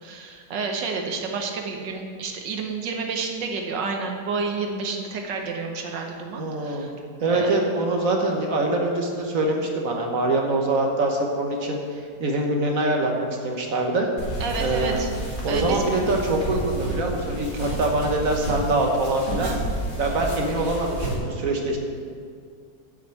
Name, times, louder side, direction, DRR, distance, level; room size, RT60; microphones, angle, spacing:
voice 1, 0.0-6.9 7.3-7.6 14.4-15.2 15.5-15.8 19.4-19.6, right 4 dB, 75° right, 2 dB, 1.5 m, -30 dB
voice 2, 6.4-6.9 7.2-13.1 13.4-14.1 14.6-15.0 15.4-19.5 20.0-21.8, right 2 dB, 50° right, 1 dB, 1.5 m, -24 dB
sound 1, 14.2-21.2, right 1 dB, 30° left, 1.9 m, -31 dB
8.0 x 6.3 x 8.2 m, 2.2 s
omnidirectional pair, 2.0 m